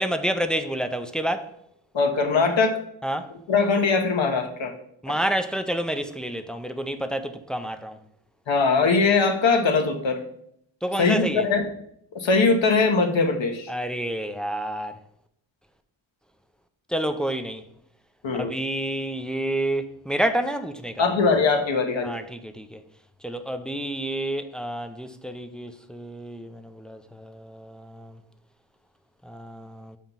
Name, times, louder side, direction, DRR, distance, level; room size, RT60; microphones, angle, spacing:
voice 1, 0.0-1.5 3.0-3.3 5.0-8.0 10.8-11.5 13.7-15.0 16.9-17.6 18.3-21.1 22.0-22.8 23.2-28.2 29.2-30.0, right 1 dB, ahead, 0.4 m, -29 dB
voice 2, 1.9-2.8 3.5-4.7 8.5-10.2 11.0-11.7 12.1-13.7 18.2-18.5 21.0-22.2, left 4 dB, 65° left, 1.0 m, -21 dB
7.4 x 2.9 x 5.2 m
cardioid pair, 80°, 50 cm